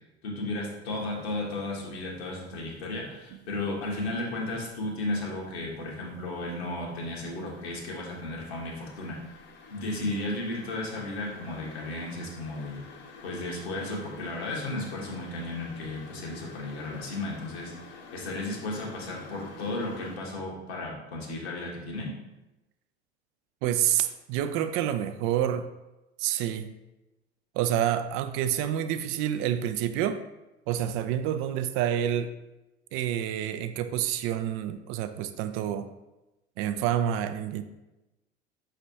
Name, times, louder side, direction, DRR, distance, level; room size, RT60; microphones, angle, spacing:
voice 1, 0.2-9.2 9.7-12.8 13.2-17.7 18.1-22.1, left 2 dB, 70° left, -2 dB, 1.3 m, -34 dB
sound 1, 1.1-1.5 1.9-3.4 3.8-20.2, left 4 dB, 35° left, 0.6 m, -49 dB
voice 2, 23.6-25.7 26.2-26.7 27.5-30.2 30.7-32.3 32.9-35.9 36.6-37.6, right 10 dB, 40° right, 10 dB, 0.4 m, -28 dB
5.9 x 3.3 x 2.7 m, 1.0 s
figure-of-eight pair, 70°, 33 cm